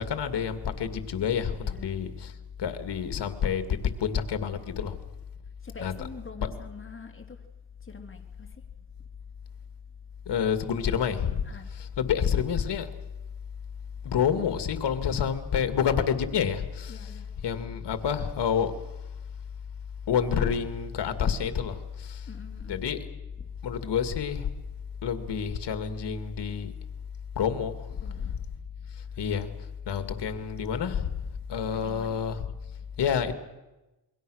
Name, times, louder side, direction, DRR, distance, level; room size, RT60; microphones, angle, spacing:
voice 1, 0.0-2.3 2.6-5.0 5.8-5.9 6.4-6.5 10.3-11.4 11.7-12.9 14.0-17.1 17.4-18.7 20.1-22.3 22.7-23.0 23.6-24.5 25.0-26.7 27.4-27.9 28.2-28.3 29.2-29.5 29.9-31.1 31.5-32.5 33.0-33.3, left 7 dB, 75° left, 9 dB, 2.3 m, -28 dB
voice 2, 5.6-7.4 7.8-8.6 11.4-11.7 16.9-17.3 22.3-22.7 23.4-23.5 27.9-28.3 31.7-32.2, left 4 dB, 30° left, 4 dB, 3.4 m, -46 dB
28.0 x 22.5 x 6.5 m, 1.0 s
cardioid pair, 90°, 41 cm